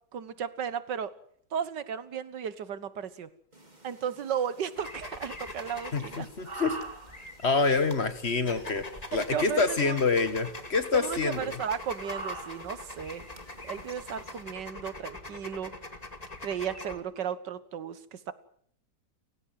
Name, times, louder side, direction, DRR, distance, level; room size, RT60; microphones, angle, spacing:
voice 1, 0.1-1.2 1.5-3.3 3.8-6.3 9.1-10.0 10.9-13.2 13.6-15.7 16.4-18.3, right 8 dB, 80° right, 15 dB, 2.0 m, -34 dB
sound 1, 3.5-14.4, right 3 dB, 25° right, 3.6 m, -47 dB
sound 2, 4.8-17.0, left 2 dB, 20° left, 2.3 m, -43 dB
voice 2, 5.9-6.8 7.4-8.8 9.1-11.5, left 4 dB, 40° left, 11 dB, 2.0 m, -26 dB
29.5 x 16.0 x 7.7 m, 0.65 s
omnidirectional pair, 1.8 m